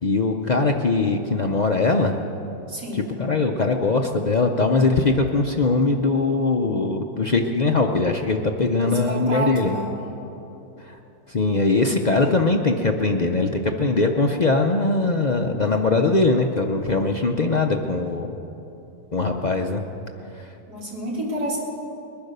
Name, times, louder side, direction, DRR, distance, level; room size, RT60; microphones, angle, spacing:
voice 1, 0.0-2.2 2.9-9.7 10.8-11.0 11.3-18.3 19.1-19.8 20.3-20.5, left 3 dB, 70° left, 2 dB, 0.4 m, -21 dB
voice 2, 2.7-3.1 8.8-10.0 20.7-21.6, right 1 dB, 75° right, -6 dB, 4.0 m, -29 dB
21.0 x 10.5 x 6.7 m, 3.0 s
omnidirectional pair, 1.8 m